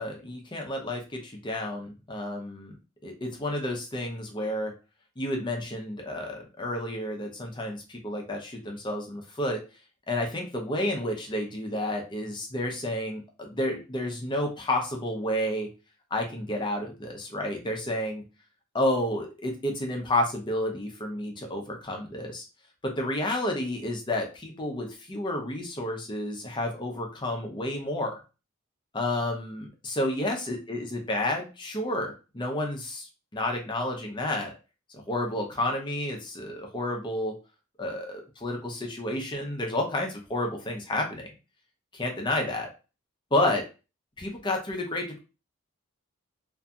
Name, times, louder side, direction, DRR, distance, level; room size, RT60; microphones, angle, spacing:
voice 1, 0.0-2.7 3.0-4.7 5.2-9.6 10.1-15.7 16.1-18.2 18.7-22.4 22.8-28.2 28.9-34.5 34.9-37.3 37.8-41.3 41.9-42.7 43.3-43.6 44.2-45.2, left 1 dB, 20° left, 2 dB, 0.5 m, -30 dB
2.6 x 2.5 x 2.3 m, 0.31 s
head